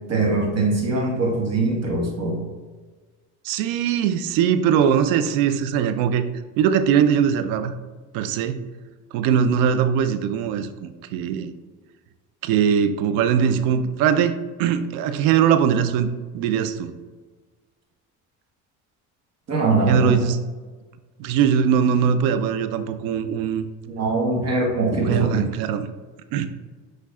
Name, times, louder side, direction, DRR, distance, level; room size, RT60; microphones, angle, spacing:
voice 1, 0.1-2.4 19.5-20.2 23.9-25.4, right 3 dB, 50° right, -1 dB, 1.3 m, -22 dB
voice 2, 3.4-6.2 6.6-7.7 8.1-8.6 9.1-11.5 12.4-16.1 16.3-16.9 19.9-20.4 21.2-23.7 25.0-25.9 26.3-26.5, right 8 dB, 85° right, 11 dB, 0.5 m, -21 dB
6.2 x 3.2 x 2.3 m, 1.4 s
supercardioid pair, 90°, 34 cm